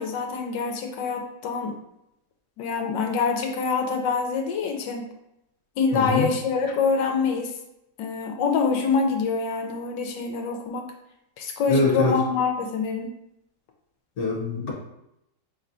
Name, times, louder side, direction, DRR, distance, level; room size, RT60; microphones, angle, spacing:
voice 1, 0.0-1.8 2.6-5.1 5.8-7.5 8.0-10.9 11.4-13.1, left 5 dB, 80° left, 2 dB, 1.3 m, -25 dB
voice 2, 5.9-6.3 11.7-12.1 14.2-14.7, left 3 dB, 55° left, -1 dB, 1.4 m, -24 dB
4.2 x 3.5 x 2.6 m, 0.83 s
omnidirectional pair, 1.9 m